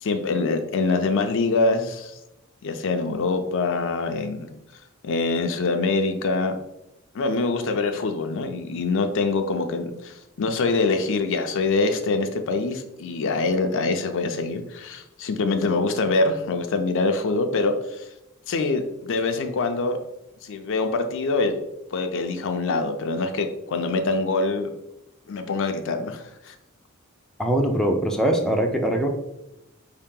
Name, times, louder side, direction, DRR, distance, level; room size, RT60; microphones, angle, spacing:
voice 1, 0.0-2.2 2.6-4.5 5.0-6.6 7.1-18.0 18.5-20.0 20.4-21.6 21.9-24.7 25.3-26.6, left 3 dB, 60° left, 6 dB, 0.4 m, -24 dB
voice 2, 27.4-29.1, right 1 dB, ahead, 1 dB, 0.4 m, -22 dB
4.7 x 2.8 x 3.6 m, 0.89 s
head